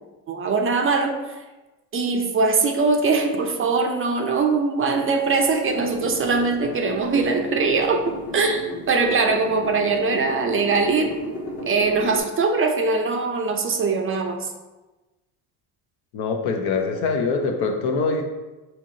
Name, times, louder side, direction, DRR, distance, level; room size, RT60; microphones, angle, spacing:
voice 1, 0.3-1.4 1.9-11.1 11.7-14.5, right 4 dB, 30° right, 4 dB, 0.5 m, -22 dB
sound 1, 5.4-12.2, left 1 dB, 35° left, 1.1 m, -34 dB
voice 2, 16.1-18.2, left 4 dB, 65° left, 3 dB, 0.8 m, -23 dB
4.5 x 2.8 x 2.6 m, 1.1 s
supercardioid pair, 85°, 41 cm